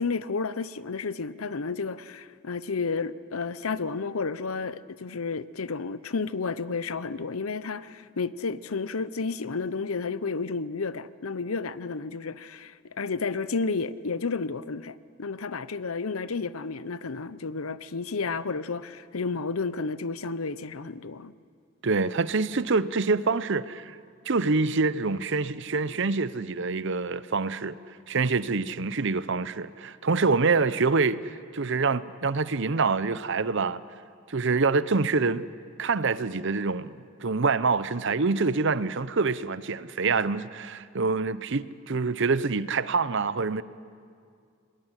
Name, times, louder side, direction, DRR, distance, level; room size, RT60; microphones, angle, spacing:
voice 1, 0.0-21.3, left 4 dB, 85° left, 0.8 m, -31 dB
voice 2, 21.8-24.0 24.3-27.8 28.1-33.8 34.3-35.5 35.8-43.6, right 4 dB, 60° right, 0.7 m, -26 dB
25.5 x 21.0 x 9.9 m
head